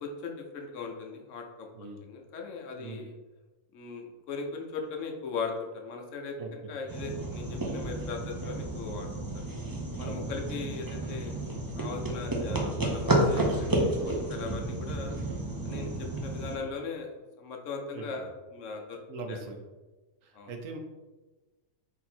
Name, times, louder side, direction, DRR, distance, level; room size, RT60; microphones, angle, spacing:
voice 1, 0.0-1.7 2.0-3.1 3.7-9.1 9.3-9.4 10.0-11.3 11.8-13.7 14.0-15.1 15.6-17.1 17.4-19.0 19.3-19.4 20.3-20.5, left 4 dB, 70° left, 2 dB, 1.0 m, -39 dB
voice 2, 6.4-6.7 10.0-10.2 13.4-13.9 15.7-16.0 17.9-18.3 19.1-19.6 20.2-20.8, right 3 dB, 75° right, 4 dB, 1.0 m, -41 dB
sound 1, 6.9-16.6, right 1 dB, 30° right, 0.4 m, -31 dB
4.1 x 2.7 x 4.2 m, 1.2 s
omnidirectional pair, 1.4 m